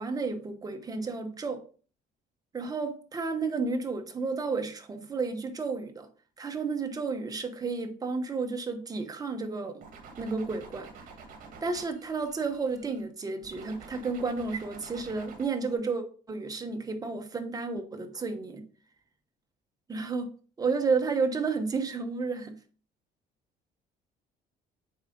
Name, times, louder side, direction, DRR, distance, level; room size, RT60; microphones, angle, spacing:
voice 1, 0.0-1.6 2.5-6.1 6.4-9.8 10.2-10.9 11.6-18.6 19.9-20.3 20.6-22.5, right 4 dB, 20° right, 1.0 m, -32 dB
sound 1, 9.8-13.0 13.4-15.7, right 5 dB, 55° right, 1.9 m, -48 dB
7.2 x 4.9 x 3.8 m
cardioid pair, 135°, 17 cm